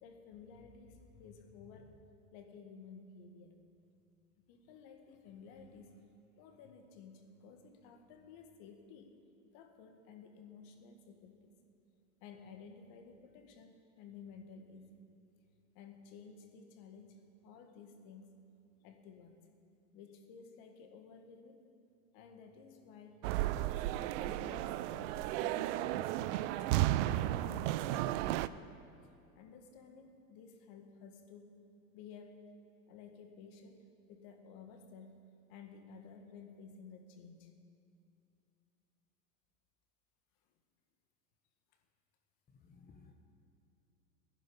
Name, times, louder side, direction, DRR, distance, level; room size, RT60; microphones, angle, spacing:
voice 1, 0.0-1.9 2.3-3.6 4.5-6.0 6.4-9.1 9.5-11.5 12.2-15.0 15.8-18.4 18.8-19.4 19.9-21.6 22.1-23.2 23.6-26.8 27.1-28.8 29.4-31.5 31.9-32.4 32.9-33.8 34.1-37.5, left 5 dB, 50° left, 5 dB, 1.9 m, -54 dB
sound 1, 23.2-28.5, right 15 dB, 50° right, 0.5 m, -34 dB
voice 2, 42.5-43.1, left 4 dB, 20° left, 2 dB, 1.0 m, -59 dB
18.0 x 10.5 x 5.6 m, 2.6 s
hypercardioid pair, 115°, 49 cm